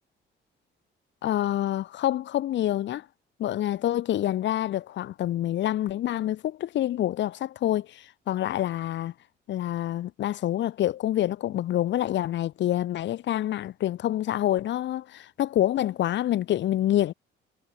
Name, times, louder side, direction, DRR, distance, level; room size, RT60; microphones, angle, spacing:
voice 1, 1.2-3.1 3.4-9.1 9.5-17.1, left 13 dB, 70° left, 5.2 m, -27 dB
cardioid pair, 165°, 19 cm